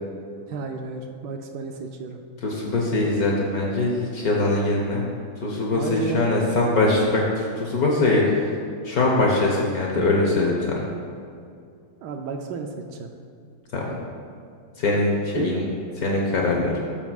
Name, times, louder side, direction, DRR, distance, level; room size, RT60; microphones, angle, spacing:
voice 1, 0.5-2.2 5.7-6.4 9.9-10.2 12.0-13.1 15.3-15.5, right 5 dB, 80° right, 4 dB, 0.9 m, -32 dB
voice 2, 2.4-5.0 5.4-8.5 8.8-10.9 13.7-14.0 14.8-15.6 16.0-16.8, left 2 dB, 55° left, -2 dB, 1.1 m, -22 dB
13.0 x 7.0 x 2.3 m, 2.4 s
omnidirectional pair, 2.4 m